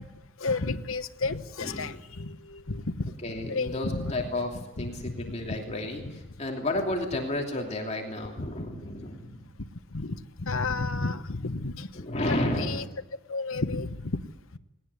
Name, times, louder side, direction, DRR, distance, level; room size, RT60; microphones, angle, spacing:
voice 1, 0.4-3.1 3.4-4.1 4.8-4.9 5.2-5.6 8.4-8.5 9.9-10.2 10.4-12.0 12.6-12.8 13.3-14.2, left 3 dB, 65° left, 9 dB, 1.1 m, -31 dB
voice 2, 1.6-1.9 3.2-9.4 11.9-12.8, left 1 dB, 30° left, 1 dB, 2.9 m, -32 dB
20.0 x 18.5 x 9.7 m, 0.94 s
head